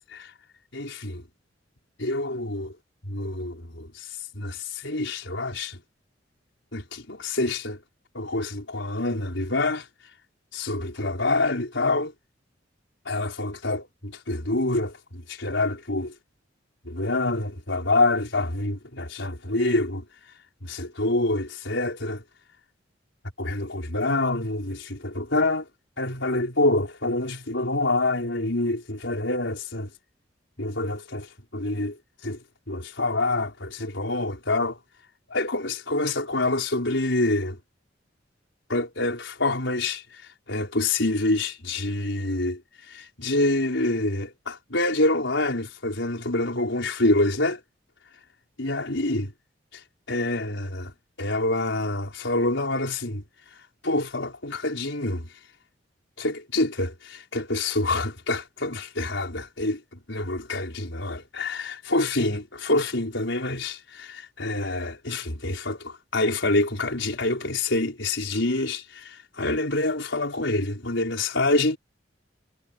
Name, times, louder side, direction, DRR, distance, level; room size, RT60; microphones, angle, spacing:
voice 1, 0.7-1.2 2.0-2.7 3.1-4.1 4.3-5.8 6.7-7.8 8.1-9.9 10.5-12.1 13.1-16.1 16.9-20.0 20.6-22.2 23.4-25.7 26.0-29.9 30.6-32.4 32.7-34.8 35.3-37.6 38.7-40.2 40.5-42.6 42.9-47.6 48.6-49.3 49.7-49.8 50.1-50.9 51.2-53.2 53.8-55.3 56.2-71.8, left 2 dB, 70° left, 5.6 m, -26 dB
head